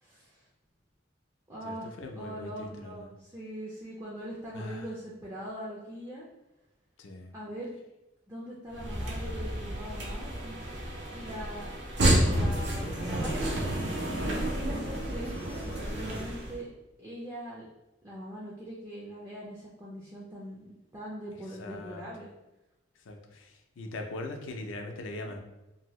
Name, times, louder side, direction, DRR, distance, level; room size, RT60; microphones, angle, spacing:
voice 1, 0.0-0.4 1.5-6.3 7.3-7.7 8.3-10.6 11.1-11.7 12.1-13.6 14.3-16.7 17.0-17.7 18.0-22.4 25.2-25.4, equal, 15° right, -7 dB, 0.4 m, -42 dB
voice 2, 1.6-3.1 4.5-4.9 7.0-7.3 21.6-22.0 23.1-25.4, left 2 dB, 80° left, 3 dB, 0.5 m, -40 dB
sound 1, 8.7-16.6, right 1 dB, 65° right, 0.7 m, -30 dB
2.7 x 2.6 x 3.0 m, 0.96 s
head